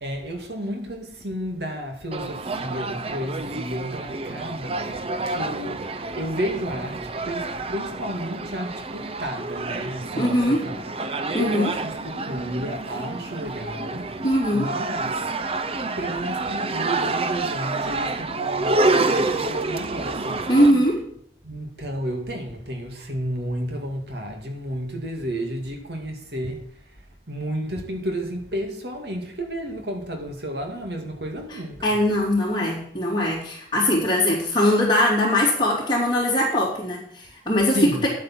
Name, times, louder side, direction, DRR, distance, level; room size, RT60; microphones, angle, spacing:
voice 1, 0.0-10.9 11.4-15.3 16.0-20.8 21.4-32.0 37.7-38.0, equal, 65° right, 2.2 m, -32 dB
sound 1, 2.1-20.7, right 3 dB, 35° right, 0.6 m, -28 dB
voice 2, 10.2-10.6 11.3-11.7 14.2-14.7 20.5-21.0 31.8-38.1, left 1 dB, 25° left, 3.0 m, -21 dB
10.0 x 8.3 x 6.0 m
head